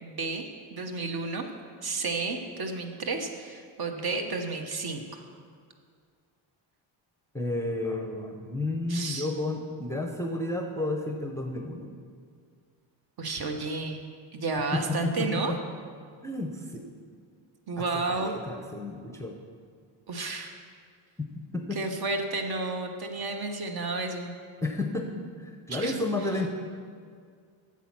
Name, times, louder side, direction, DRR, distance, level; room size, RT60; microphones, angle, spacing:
voice 1, 0.0-1.4 1.8-5.2 8.9-9.3 13.2-14.0 14.3-15.5 17.7-18.3 20.1-20.6 21.7-24.3 25.7-26.0, right 3 dB, 45° right, 4 dB, 1.1 m, -32 dB
voice 2, 7.3-11.9 14.7-15.6 16.2-16.9 17.8-19.4 21.2-21.3 21.5-21.8 24.6-26.5, left 2 dB, 5° left, 3 dB, 0.6 m, -32 dB
8.4 x 7.4 x 6.0 m, 2.1 s
cardioid pair, 120°, 50 cm